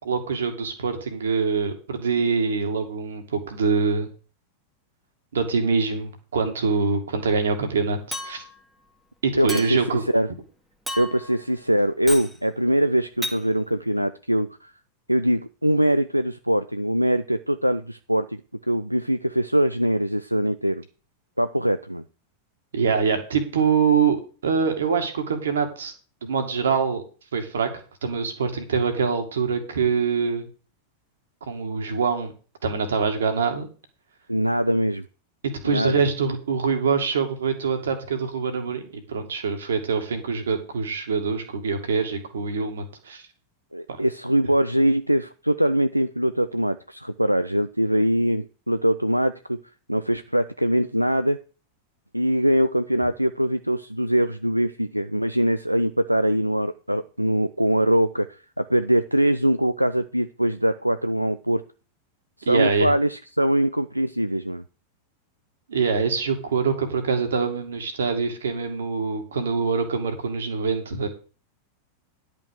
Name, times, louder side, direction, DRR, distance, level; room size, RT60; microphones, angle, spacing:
voice 1, 0.0-4.1 5.3-8.4 9.2-10.0 22.7-24.2 24.4-25.9 26.2-27.0 27.3-27.7 28.0-30.5 31.5-32.3 32.6-33.7 35.4-38.8 39.1-43.2 62.5-62.9 65.7-71.1, right 5 dB, 65° right, 6 dB, 2.0 m, -24 dB
Chink clink, 8.1-8.6 9.5-10.0 10.9-11.4 12.1-12.3 13.2-13.4, left 1 dB, ahead, 1.6 m, -33 dB
voice 2, 9.3-9.8 10.1-10.3 11.0-14.7 15.1-18.4 18.7-20.8 21.4-22.0 34.3-35.1 35.6-36.0 43.7-49.6 49.9-51.4 52.1-61.6 62.4-64.6, equal, 90° right, 11 dB, 0.4 m, -22 dB
10.5 x 5.4 x 6.6 m, 0.37 s
figure-of-eight pair, 90°, 0 cm